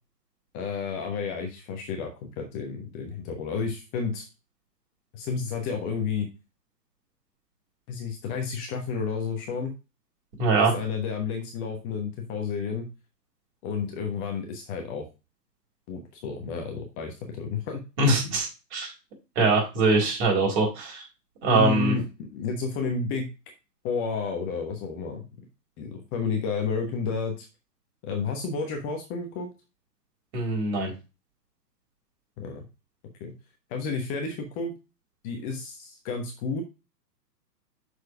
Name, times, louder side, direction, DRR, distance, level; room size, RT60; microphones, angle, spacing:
voice 1, 0.5-4.3 5.1-6.3 7.9-9.7 10.6-12.9 13.6-15.1 15.9-17.8 21.5-23.3 23.8-25.3 25.8-27.5 28.0-29.5 32.4-32.6 33.2-33.3 33.7-34.7 35.2-36.6, left 5 dB, 25° left, 3 dB, 1.1 m, -31 dB
voice 2, 10.4-10.8 18.0-18.9 19.4-21.0 21.4-21.9 30.3-30.9, right 3 dB, 45° right, -1 dB, 4.2 m, -23 dB
6.4 x 4.8 x 4.8 m, 0.29 s
hypercardioid pair, 130°, 50 cm